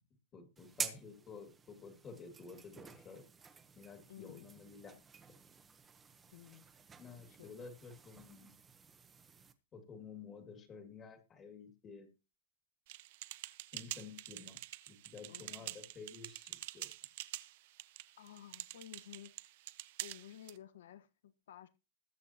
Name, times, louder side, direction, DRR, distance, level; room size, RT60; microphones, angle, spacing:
voice 1, 0.3-3.2 3.8-5.0 7.0-8.5 9.7-12.1 13.7-14.6 14.9-16.9, left 5 dB, 20° left, 2.1 m, -52 dB
sound 1, 0.6-9.5, right 6 dB, 10° right, 0.9 m, -49 dB
voice 2, 4.1-4.5 6.3-6.7 7.4-7.5 15.3-15.8 18.2-19.3 20.0-21.7, left 11 dB, 85° left, 1.2 m, -54 dB
sound 2, 12.9-20.6, right 17 dB, 50° right, 0.7 m, -47 dB
20.5 x 8.1 x 2.9 m
supercardioid pair, 170°, 0 cm